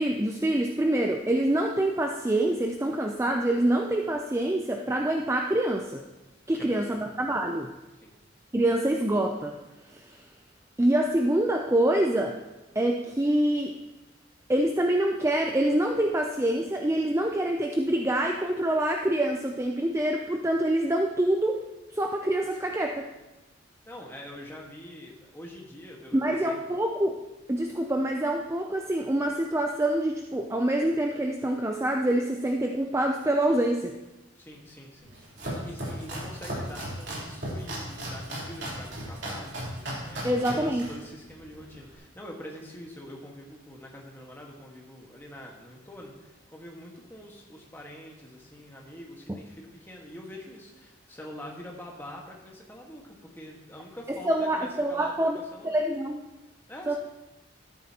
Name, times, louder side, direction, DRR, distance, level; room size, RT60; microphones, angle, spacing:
voice 1, 0.0-6.0 6.5-7.7 8.5-9.6 9.9-10.2 10.8-12.4 12.8-13.7 14.5-21.6 21.9-23.1 26.1-27.2 27.5-33.9 40.2-40.8 54.1-55.4 55.6-56.2 56.9-57.0, right 1 dB, 15° right, 2 dB, 0.4 m, -26 dB
voice 2, 6.5-7.0 8.0-8.1 23.8-26.6 34.4-55.8 56.7-57.0, equal, 10° left, -1 dB, 1.5 m, -45 dB
Domestic sounds home sounds, 35.0-42.0, right 1 dB, 55° right, 3.6 m, -36 dB
13.0 x 10.5 x 2.9 m, 1.0 s
head